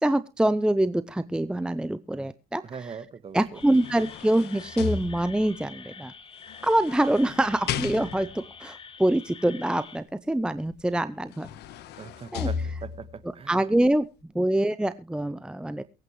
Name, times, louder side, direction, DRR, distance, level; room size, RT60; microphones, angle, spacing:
voice 1, 0.0-2.6 3.3-6.1 6.6-11.5 12.3-12.5 13.5-14.0 14.3-15.8, right 1 dB, 5° right, 13 dB, 0.6 m, -25 dB
voice 2, 2.6-3.6 12.0-13.9, right 6 dB, 35° right, 14 dB, 1.4 m, -41 dB
sound 1, 3.4-5.6 6.5-8.5 10.7-10.8 11.2-13.2 13.7-13.9, left 7 dB, 75° left, 1.3 m, -35 dB
sound 2, 3.5-10.0, left 5 dB, 30° left, 1.6 m, -46 dB
23.0 x 8.8 x 3.2 m, 0.29 s
cardioid pair, 110°, 17 cm